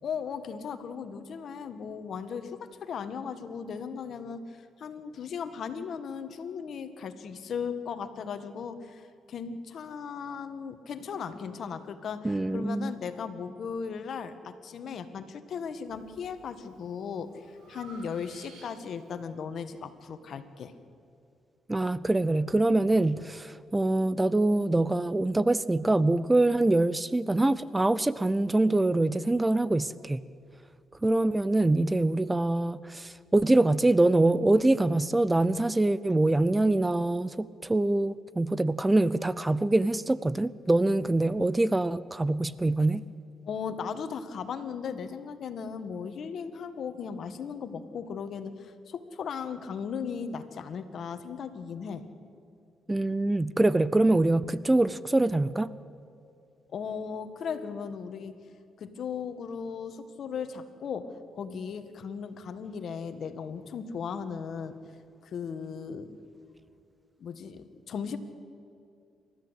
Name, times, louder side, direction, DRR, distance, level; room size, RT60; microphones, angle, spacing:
voice 1, 0.0-17.4 17.7-20.7 43.4-52.0 56.7-58.3 58.8-64.7 65.2-66.2 67.2-68.2, left 6 dB, 60° left, 10 dB, 1.7 m, -37 dB
voice 2, 12.2-12.9 21.7-30.2 31.0-43.0 52.9-55.7, right 2 dB, 15° right, 18 dB, 0.6 m, -24 dB
Breathing, 15.9-16.4 16.8-19.1, right 3 dB, 80° right, 5.1 m, -52 dB
28.5 x 13.5 x 8.2 m, 2.5 s
cardioid pair, 85°, 0 cm